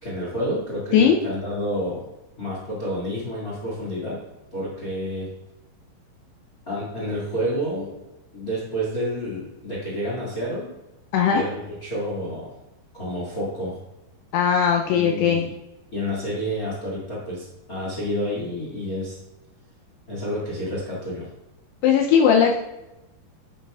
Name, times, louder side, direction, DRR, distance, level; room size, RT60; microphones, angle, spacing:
voice 1, 0.0-2.0 2.4-4.2 4.5-5.3 6.7-7.9 8.3-10.7 11.3-12.5 12.9-13.8 14.9-15.5 15.9-19.2 20.1-21.3, equal, 60° left, -6 dB, 0.9 m, -29 dB
voice 2, 11.1-11.4 14.3-15.5 21.8-22.6, left 7 dB, 90° left, 2 dB, 2.3 m, -18 dB
10.0 x 7.2 x 2.3 m, 0.96 s
omnidirectional pair, 5.4 m